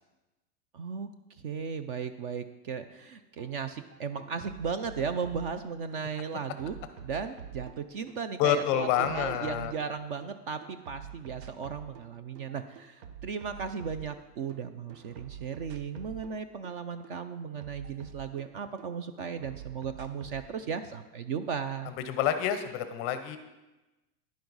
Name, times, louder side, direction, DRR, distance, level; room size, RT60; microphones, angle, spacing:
voice 1, 0.7-6.8 7.0-21.9, right 6 dB, 40° right, 10 dB, 0.4 m, -36 dB
sound 1, 3.4-3.5 3.8-6.0 6.3-10.3 10.6-12.1 12.4-14.6 14.9-18.9 19.2-20.5, right 8 dB, 85° right, 1.1 m, -47 dB
voice 2, 8.4-9.7 22.1-23.4, left 9 dB, 25° left, 10 dB, 0.5 m, -28 dB
10.5 x 10.5 x 4.0 m, 1.1 s
supercardioid pair, 150°, 47 cm